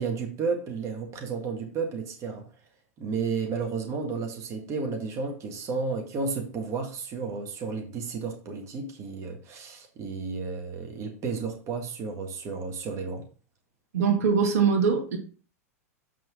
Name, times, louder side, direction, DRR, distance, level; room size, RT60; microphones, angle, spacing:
voice 1, 0.0-2.5 3.0-13.3, right 4 dB, 35° right, 1.7 m, -32 dB
voice 2, 13.9-15.2, right 6 dB, 70° right, 2.0 m, -22 dB
7.3 x 5.9 x 3.7 m
hypercardioid pair, 100°, 9 cm